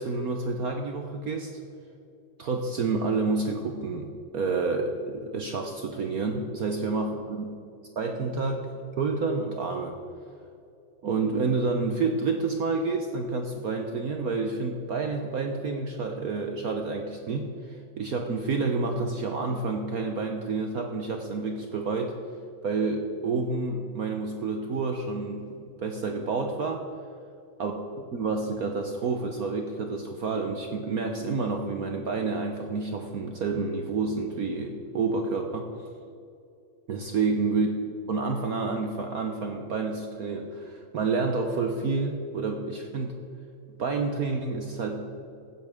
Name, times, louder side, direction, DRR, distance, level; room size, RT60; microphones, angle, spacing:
voice 1, 0.0-1.5 2.4-7.4 8.0-8.7 9.0-9.9 11.0-22.1 22.6-26.8 27.6-35.7 36.9-43.1 43.8-45.2, right 4 dB, 60° right, 4 dB, 1.0 m, -29 dB
15.5 x 10.0 x 3.6 m, 2.5 s
omnidirectional pair, 2.4 m